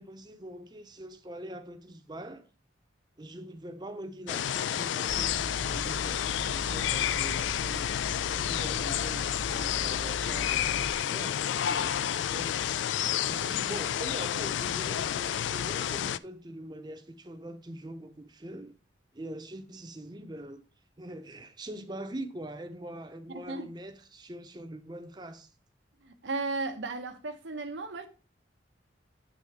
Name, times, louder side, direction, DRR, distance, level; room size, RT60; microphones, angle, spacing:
voice 1, 0.0-2.5 3.2-7.9 8.3-10.7 11.1-12.7 13.2-18.7 19.1-20.6 21.0-25.5, right 1 dB, 25° right, 0.7 m, -43 dB
sound 1, 4.3-16.2, left 10 dB, 80° left, 0.3 m, -30 dB
sound 2, 5.1-11.0, equal, 60° right, 0.9 m, -41 dB
voice 2, 26.0-28.1, right 3 dB, 85° right, 1.0 m, -35 dB
8.5 x 3.8 x 4.7 m
head